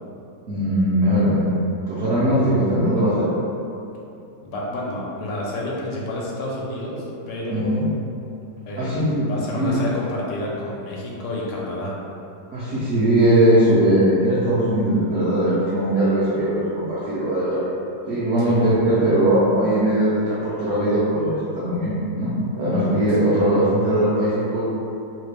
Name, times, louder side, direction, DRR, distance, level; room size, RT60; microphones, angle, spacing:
voice 1, 0.5-3.3 7.5-7.8 8.8-9.8 12.5-17.7 18.1-24.6, right 1 dB, 60° right, -11 dB, 0.8 m, -20 dB
voice 2, 4.4-7.9 8.7-11.9 18.4-18.6, left 1 dB, 85° left, -4 dB, 1.2 m, -29 dB
3.0 x 2.4 x 3.2 m, 2.7 s
omnidirectional pair, 1.9 m